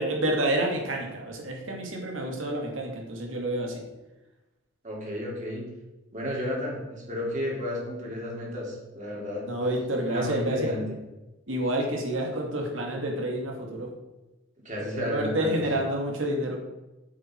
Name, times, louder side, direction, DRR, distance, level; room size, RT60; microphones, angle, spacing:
voice 1, 0.0-3.8 9.5-10.7 11.5-13.9 14.8-16.6, right 1 dB, 75° right, 0 dB, 2.3 m, -29 dB
voice 2, 4.8-5.7 6.1-9.5 10.1-10.8 14.6-15.6, left 1 dB, 40° right, -3 dB, 3.1 m, -32 dB
8.5 x 7.6 x 4.6 m, 1.0 s
head